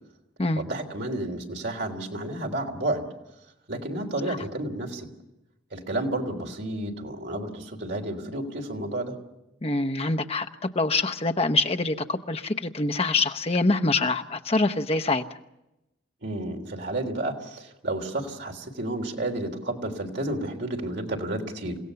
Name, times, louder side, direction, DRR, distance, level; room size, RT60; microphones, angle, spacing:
voice 1, 0.6-3.0 3.7-5.1 5.7-9.1 16.2-21.8, right 1 dB, 60° right, 3 dB, 3.4 m, -31 dB
voice 2, 9.6-15.2, left 2 dB, 30° left, 7 dB, 1.0 m, -25 dB
29.0 x 16.5 x 7.0 m, 0.92 s
head